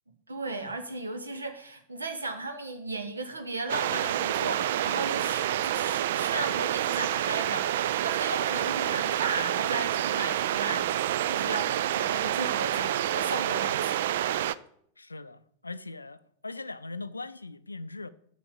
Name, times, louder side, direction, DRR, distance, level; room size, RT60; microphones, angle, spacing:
voice 1, 0.3-13.9, right 3 dB, 80° right, 1.3 m, -35 dB
sound 1, 3.7-14.6, right 12 dB, 55° right, 0.3 m, -28 dB
voice 2, 15.0-18.1, left 3 dB, 80° left, 0.4 m, -40 dB
7.2 x 6.9 x 6.8 m
figure-of-eight pair, 90°, 0 cm